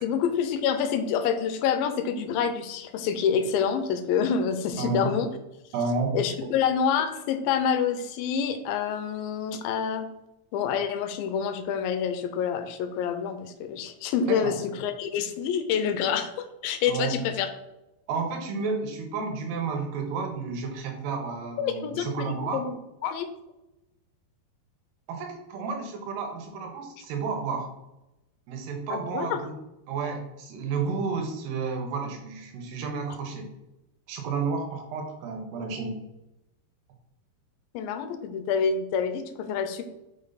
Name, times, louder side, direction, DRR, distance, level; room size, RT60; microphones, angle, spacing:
voice 1, 0.0-5.3 6.1-10.1 10.5-17.5 21.6-22.8 23.0-23.3 28.9-29.4 37.7-39.8, left 7 dB, 80° left, 8 dB, 2.2 m, -27 dB
voice 2, 4.8-5.1 5.7-6.2 14.3-14.5 16.9-17.2 18.1-22.6 25.1-27.7 28.5-29.5 29.9-33.5 34.1-36.0, right 4 dB, 85° right, 3 dB, 3.1 m, -31 dB
5.7 x 5.5 x 4.0 m, 0.92 s
omnidirectional pair, 4.6 m